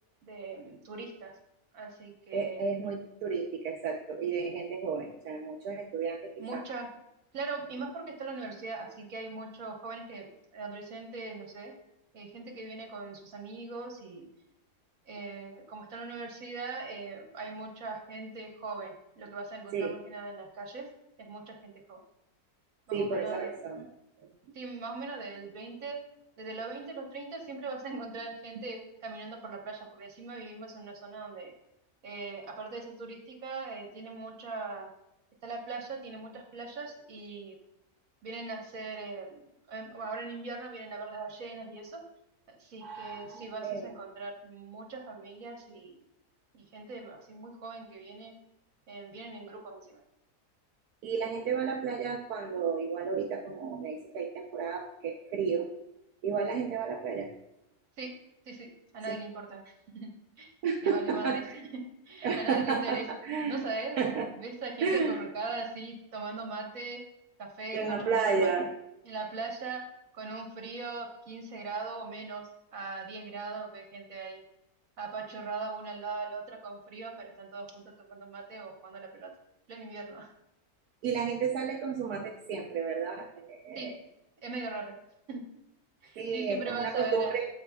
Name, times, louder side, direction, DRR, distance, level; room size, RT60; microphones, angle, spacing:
voice 1, 0.2-1.3 1.7-2.7 6.4-6.9 7.3-11.7 12.1-14.3 15.0-20.9 21.2-22.0 22.9-23.6 24.5-26.0 26.4-31.5 32.0-34.9 35.4-37.6 38.2-42.0 42.6-46.0 46.5-48.3 48.9-50.0 58.0-58.1 58.4-59.6 59.9-60.1 60.4-60.5 60.8-61.3 61.7-63.0 63.5-64.0 64.4-67.0 67.4-68.5 69.0-69.8 70.1-74.4 75.0-79.3 79.7-80.3 83.7-83.9 84.4-84.9 85.3-85.4 86.0-87.3, right 3 dB, 65° right, 2 dB, 1.7 m, -40 dB
voice 2, 2.3-6.6 19.7-19.9 22.9-23.9 24.2-24.3 42.8-43.9 51.0-55.7 56.2-57.3 59.1-59.2 60.6-61.6 62.2-64.3 64.8-65.2 67.7-68.7 81.0-84.0 86.2-87.5, right 5 dB, 85° right, 0 dB, 1.2 m, -32 dB
15.5 x 5.1 x 2.3 m, 0.86 s
omnidirectional pair, 1.6 m